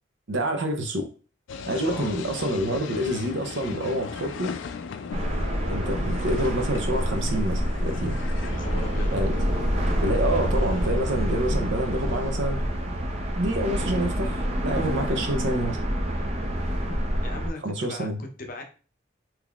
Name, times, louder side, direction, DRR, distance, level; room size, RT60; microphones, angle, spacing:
voice 1, 0.3-1.1 1.7-4.5 5.7-8.2 9.1-9.3 10.0-12.7 13.3-15.8 17.6-18.2, right 1 dB, 75° right, 0.7 m, -27 dB
sound 1, 1.5-12.3, left 5 dB, 75° left, 0.3 m, -38 dB
sound 2, 5.1-17.5, equal, 35° right, 0.5 m, -27 dB
voice 2, 8.5-9.2 17.2-18.6, left 1 dB, 45° left, 0.6 m, -38 dB
3.7 x 2.9 x 2.3 m
head